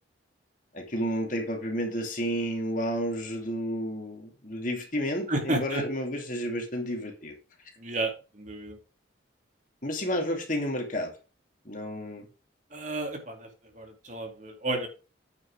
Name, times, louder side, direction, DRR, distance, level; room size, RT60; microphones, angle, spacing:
voice 1, 0.7-7.4 9.8-11.1 11.6-12.3, equal, 45° left, 2 dB, 2.7 m, -31 dB
voice 2, 5.3-5.8 7.8-8.8 12.7-13.5 13.8-14.9, right 2 dB, 40° right, 3 dB, 2.4 m, -32 dB
9.5 x 9.1 x 3.4 m, 0.32 s
head